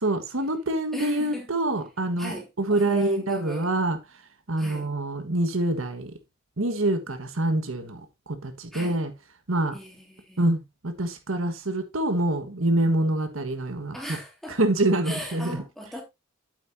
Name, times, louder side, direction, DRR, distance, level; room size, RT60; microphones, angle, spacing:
voice 1, 0.0-4.0 4.5-6.1 6.6-8.0 8.3-9.1 9.5-9.8 10.4-10.6 10.8-14.0 14.5-15.6, right 1 dB, 85° right, 1.5 m, -25 dB
voice 2, 0.9-1.5 2.2-3.7 4.6-4.9 8.7-9.0 9.7-10.4 13.9-14.6 15.0-16.0, equal, ahead, 2.7 m, -38 dB
8.7 x 8.0 x 2.7 m
head